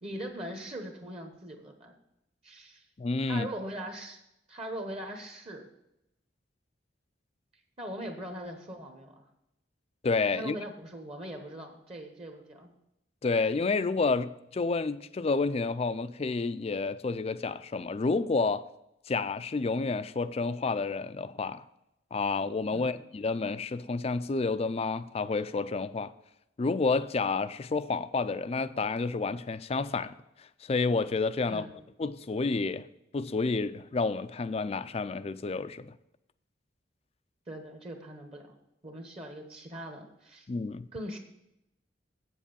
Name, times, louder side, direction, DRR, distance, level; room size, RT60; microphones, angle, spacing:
voice 1, 0.0-1.9 2.4-2.8 3.3-4.2 4.5-5.7 7.8-9.2 10.4-12.7 22.7-22.9 31.4-31.8 37.5-38.5 38.8-40.5 40.9-41.2, right 1 dB, 30° right, 1.0 m, -41 dB
voice 2, 3.0-3.5 10.0-10.6 13.2-18.7 19.1-21.6 22.1-26.1 26.6-30.1 30.4-31.7 32.0-32.9 33.1-35.9 40.5-40.9, left 4 dB, 30° left, 0.4 m, -30 dB
8.2 x 7.4 x 6.9 m
head